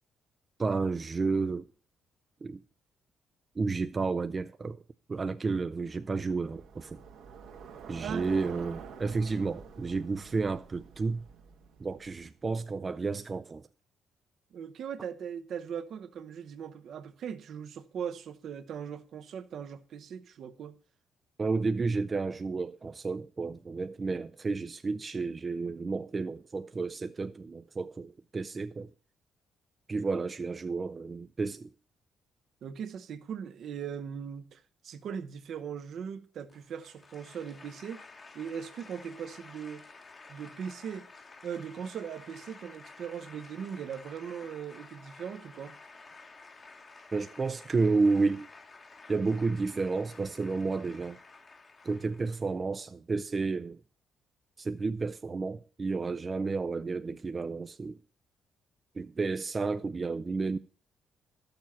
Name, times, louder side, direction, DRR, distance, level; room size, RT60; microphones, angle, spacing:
voice 1, 0.6-1.7 2.4-2.6 3.6-4.8 5.1-7.0 7.9-11.3 11.8-13.7 21.4-28.9 29.9-31.7 47.1-48.5 49.1-51.2 51.8-53.8 54.6-58.0 59.0-60.6, right 4 dB, 30° right, 0.4 m, -31 dB
Bicycle, 5.9-12.4, right 6 dB, 85° right, 1.3 m, -48 dB
voice 2, 14.5-20.7 32.6-38.0 38.3-39.8 40.3-41.1 41.4-45.8, right 7 dB, 65° right, 0.8 m, -39 dB
sound 1, 36.5-52.5, left 3 dB, 35° left, 1.1 m, -52 dB
11.5 x 6.8 x 5.7 m
cardioid pair, 90°, 0 cm